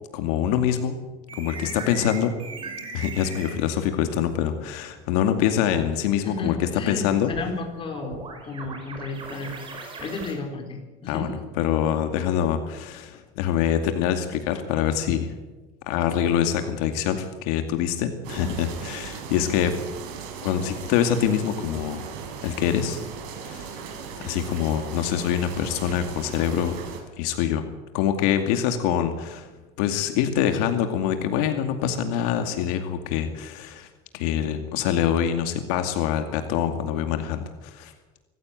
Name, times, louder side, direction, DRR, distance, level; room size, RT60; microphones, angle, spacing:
voice 1, 0.1-1.0 1.4-2.3 2.9-7.3 11.1-11.3 11.6-15.3 15.9-19.7 20.4-22.0 22.4-23.0 23.5-23.8 24.2-26.8 27.2-27.6 27.9-29.5 29.8-33.9 34.1-37.9, left 9 dB, 85° left, 7 dB, 2.3 m, -25 dB
tiedonymppaaja - knowledge forcer, 1.3-3.6 7.3-10.3, right 4 dB, 25° right, 5.5 m, -38 dB
voice 2, 6.2-9.6 10.0-11.4 18.4-18.5, left 3 dB, 30° left, 3 dB, 4.6 m, -33 dB
sound 1, 18.2-27.0, right 6 dB, 75° right, 5.4 m, -38 dB
25.0 x 15.0 x 9.2 m, 1.2 s
cardioid pair, 155°, 19 cm